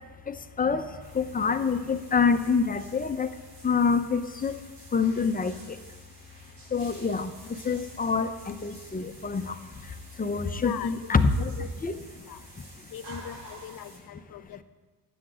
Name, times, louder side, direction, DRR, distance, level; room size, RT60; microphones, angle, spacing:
voice 1, 0.3-0.8 1.1-3.3 3.6-4.6 4.9-5.5 6.7-7.3 7.6-9.5 10.2-11.5 11.8-11.9, left 5 dB, 20° left, 9 dB, 0.6 m, -26 dB
sound 1, 1.0-14.0, right 2 dB, 65° right, 4.3 m, -51 dB
voice 2, 10.6-11.3 11.6-11.7 12.3-12.4 12.9-14.6, left 10 dB, 50° left, 11 dB, 0.7 m, -40 dB
9.8 x 8.0 x 8.7 m, 1.4 s
cardioid pair, 115°, 44 cm